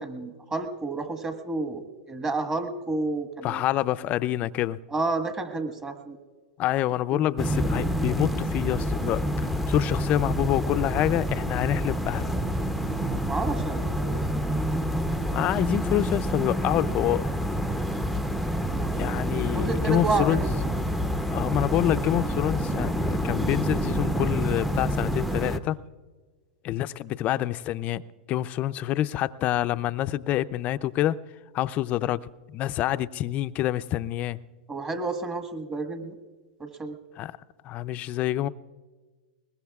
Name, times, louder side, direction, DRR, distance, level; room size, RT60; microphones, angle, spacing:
voice 1, 0.0-3.6 4.9-6.2 7.1-7.3 13.2-14.2 18.6-20.5 34.7-36.1 36.6-37.0, right 3 dB, 20° right, 1.5 m, -31 dB
voice 2, 3.4-4.8 6.6-9.2 9.5-12.3 15.3-17.4 18.9-20.4 21.3-25.8 26.6-28.0 28.3-31.2 31.5-34.4 37.2-37.4 37.6-38.5, left 13 dB, 35° left, 0.4 m, -27 dB
sound 1, 7.4-25.6, equal, ahead, 0.6 m, -28 dB
sound 2, 15.4-25.4, right 5 dB, 50° right, 4.8 m, -40 dB
22.0 x 20.5 x 2.4 m
hypercardioid pair, 125°, 4 cm